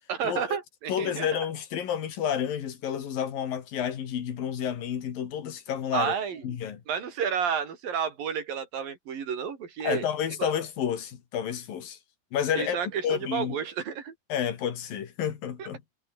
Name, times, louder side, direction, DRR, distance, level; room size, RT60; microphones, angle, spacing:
voice 1, 0.1-1.5 5.9-6.5 6.9-10.1 10.4-10.5 12.6-14.2 15.6-15.7, right 7 dB, 85° right, 5.1 m, -31 dB
voice 2, 0.9-6.1 6.4-6.8 9.8-12.0 12.3-12.8 13.0-13.6 14.3-15.8, left 9 dB, 80° left, 4.3 m, -30 dB
omnidirectional pair, 3.9 m